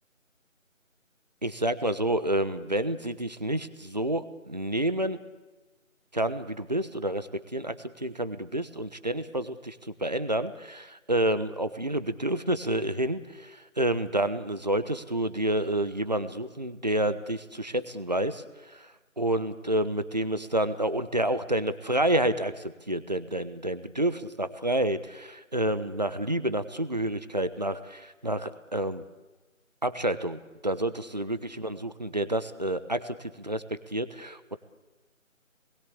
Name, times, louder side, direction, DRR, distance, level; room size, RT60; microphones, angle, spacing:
voice 1, 1.4-5.2 6.1-7.7 8.0-9.8 10.0-18.4 18.7-18.8 19.2-29.0 29.8-34.6, right 1 dB, 30° right, 12 dB, 1.2 m, -29 dB
27.0 x 21.0 x 8.5 m, 1.2 s
figure-of-eight pair, 170°, 41 cm